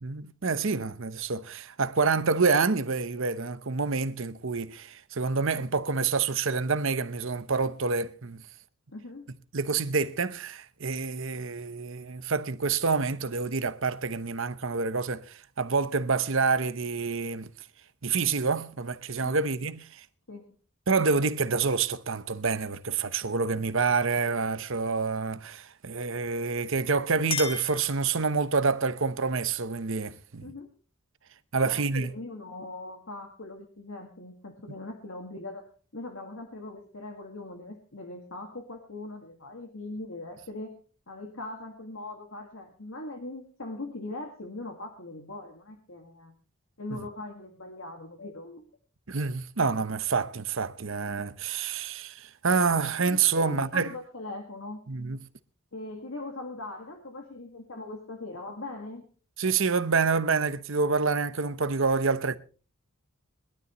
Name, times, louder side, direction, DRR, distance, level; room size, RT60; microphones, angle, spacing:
voice 1, 0.0-8.4 9.5-17.5 18.0-20.0 20.9-30.5 31.5-32.1 46.9-47.0 49.1-53.9 54.9-55.2 59.4-62.4, right 4 dB, 60° right, 0.9 m, -27 dB
voice 2, 8.9-9.3 19.2-19.4 20.3-20.5 30.4-30.7 31.6-46.3 46.8-48.7 53.1-54.9 55.7-59.1, left 2 dB, 65° left, 1.9 m, -41 dB
Chink clink, 26.7-28.6, left 4 dB, 25° left, 1.6 m, -36 dB
21.5 x 12.5 x 3.1 m
head